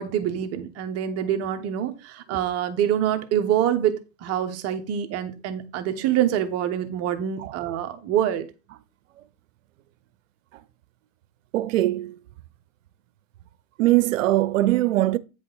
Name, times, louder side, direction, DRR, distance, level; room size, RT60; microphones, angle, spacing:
voice 1, 0.0-8.5, right 10 dB, 40° right, 1.1 m, -25 dB
voice 2, 11.5-12.2 13.8-15.2, right 16 dB, 75° right, 0.8 m, -21 dB
9.1 x 5.0 x 4.0 m
supercardioid pair, 130°, 39 cm